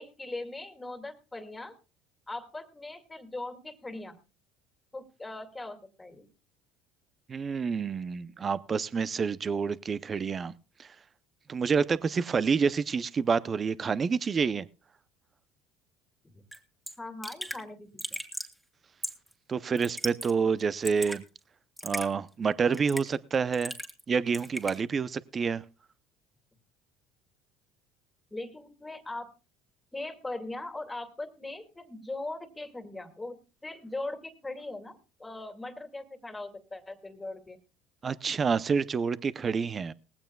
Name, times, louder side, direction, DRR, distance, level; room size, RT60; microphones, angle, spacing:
voice 1, 0.0-1.7 2.3-4.2 4.9-6.3 16.2-16.3 17.0-18.2 28.3-29.3 29.9-37.6, left 2 dB, 15° left, 2.3 m, -40 dB
voice 2, 7.3-10.5 10.8-10.9 11.5-14.6 19.5-21.2 21.8-23.7 24.1-25.6 38.0-39.9, right 5 dB, 35° right, 0.6 m, -28 dB
Raindrop / Drip, 16.5-16.6 16.9-17.0 17.2-17.6 18.0-18.5 19.0-19.3 19.8-20.3 20.6-21.2 21.8-22.1 22.7-23.2 23.5-24.0 24.3-24.8, equal, 5° right, 2.5 m, -36 dB
19.0 x 16.0 x 2.3 m
supercardioid pair, 85°, 0 cm